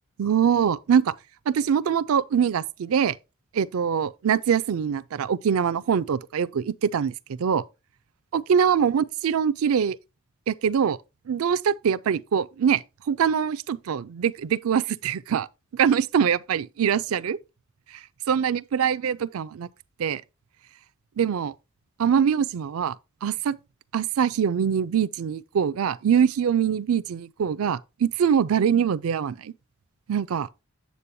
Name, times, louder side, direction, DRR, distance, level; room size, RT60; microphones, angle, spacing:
voice 1, 0.2-1.1 1.5-3.1 3.5-7.1 7.4-7.6 8.3-10.0 10.5-11.0 11.3-15.5 15.7-17.4 18.3-19.7 20.0-20.2 21.2-21.5 22.0-23.0 23.2-23.6 23.9-29.5 30.1-30.5, right 7 dB, 75° right, 0.4 m, -23 dB
8.3 x 7.6 x 2.7 m
head